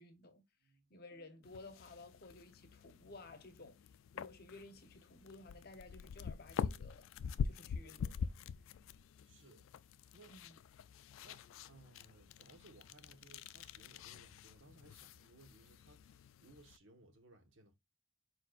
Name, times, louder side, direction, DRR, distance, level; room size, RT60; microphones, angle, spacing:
voice 1, 0.0-0.4 0.9-7.1 7.4-8.3 10.3-10.6, left 2 dB, 50° left, 0.8 m, -55 dB
voice 2, 0.6-1.1 9.3-9.7 10.1-10.4 11.2-17.7, right 2 dB, 75° right, 1.2 m, -63 dB
sound 1, 1.4-16.8, left 6 dB, 85° left, 0.3 m, -45 dB
4.6 x 4.5 x 2.4 m
head